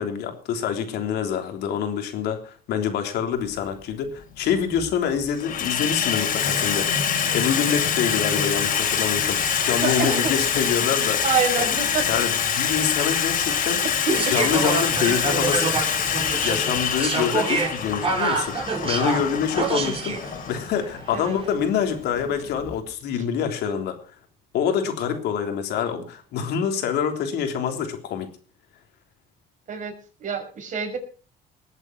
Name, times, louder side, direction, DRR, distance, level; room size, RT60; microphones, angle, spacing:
voice 1, 0.0-11.2 11.6-11.7 12.1-13.8 14.3-15.7 16.4-24.0 24.5-28.3, left 7 dB, 75° left, 5 dB, 3.5 m, -26 dB
Water tap faucet / Sink (filling or washing), 3.4-3.6 4.5-4.9 5.2-22.8, left 7 dB, 55° left, 3.8 m, -25 dB
voice 2, 9.6-10.3 11.2-12.2 14.1-14.4 21.1-21.4 29.7-31.0, right 5 dB, 50° right, 3 dB, 5.9 m, -26 dB
sound 1, 14.1-20.3 21.2-21.5, right 4 dB, 35° right, 4.6 m, -27 dB
20.5 x 8.3 x 6.0 m, 0.39 s
cardioid pair, 110°, 17 cm